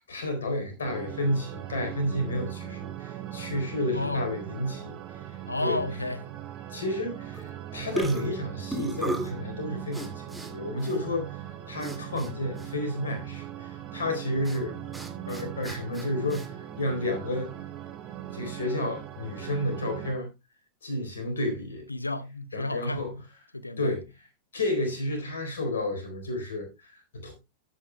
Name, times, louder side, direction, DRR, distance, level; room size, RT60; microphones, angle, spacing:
voice 1, 0.0-5.2 5.6-5.8 6.7-14.8 15.2-17.5 18.3-20.3 20.8-21.9 22.5-23.2 23.8-24.1 24.5-27.3, left 1 dB, 65° left, 3.9 m, -31 dB
sound 1, 0.8-20.1, right 11 dB, 35° right, 4.0 m, -40 dB
voice 2, 3.9-4.3 5.5-6.2 21.9-23.0 23.5-23.9, left 2 dB, 85° left, 0.7 m, -32 dB
sound 2, 7.3-7.6 7.9-9.4 9.9-10.5 10.8-11.0 11.8-12.3 12.6-12.7 14.4-14.6 14.9-16.5, right 2 dB, 5° right, 2.2 m, -35 dB
14.0 x 9.1 x 2.2 m
figure-of-eight pair, 90°, 0 cm